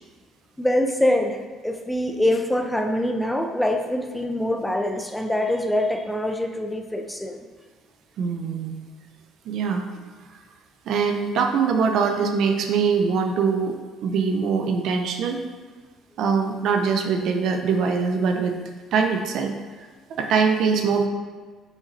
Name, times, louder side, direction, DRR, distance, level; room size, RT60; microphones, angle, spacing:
voice 1, 0.6-7.5, left 1 dB, 5° left, 3 dB, 0.6 m, -24 dB
voice 2, 8.2-8.8 9.5-10.1 10.9-15.4 16.2-18.6 18.9-19.5 20.1-21.1, right 5 dB, 65° right, 5 dB, 0.6 m, -23 dB
5.9 x 4.0 x 4.1 m, 1.5 s
cardioid pair, 90°, 0 cm